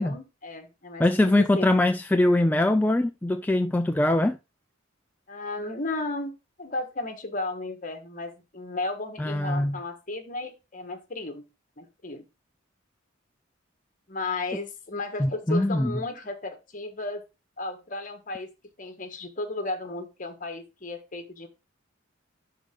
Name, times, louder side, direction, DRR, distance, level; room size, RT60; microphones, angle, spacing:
voice 1, 0.0-1.8 5.3-11.4 11.8-12.2 14.1-17.3 17.6-18.5 18.8-21.5, left 2 dB, 40° left, 1.4 m, -34 dB
voice 2, 1.0-4.4 9.2-9.8 15.2-15.9, left 1 dB, 10° left, 0.3 m, -22 dB
11.0 x 3.9 x 3.7 m
head